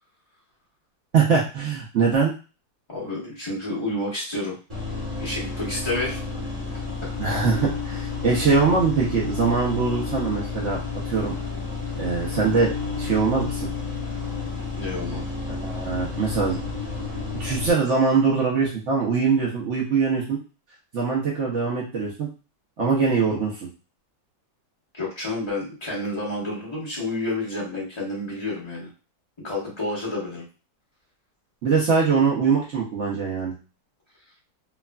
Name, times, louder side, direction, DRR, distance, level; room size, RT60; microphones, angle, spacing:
voice 1, 1.1-2.3 7.2-11.3 12.0-13.7 15.5-16.6 17.4-20.4 20.9-22.3 22.8-23.7 31.6-33.5, right 5 dB, 75° right, -4 dB, 0.6 m, -22 dB
voice 2, 2.9-4.6 5.2-6.2 7.0-7.1 12.3-12.5 14.7-15.2 24.9-28.9 29.4-30.4, left 2 dB, 35° left, -6 dB, 0.4 m, -30 dB
sound 1, 4.7-17.7, left 4 dB, 25° right, 0.7 m, -31 dB
3.1 x 2.4 x 2.2 m, 0.33 s
omnidirectional pair, 2.1 m